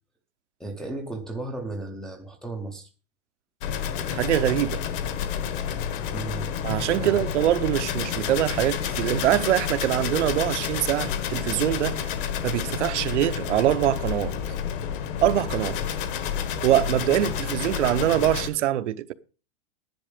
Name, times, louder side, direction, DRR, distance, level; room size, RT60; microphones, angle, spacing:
voice 1, 0.6-2.9 6.1-6.5 7.0-7.2, right 2 dB, ahead, 0.6 m, -34 dB
sound 1, 3.6-18.5, left 8 dB, 40° left, 1.4 m, -30 dB
voice 2, 4.1-4.8 6.6-12.1 12.4-14.4 15.2-15.8 16.6-19.1, right 13 dB, 65° right, 0.9 m, -24 dB
11.0 x 10.5 x 5.0 m
supercardioid pair, 165°, 38 cm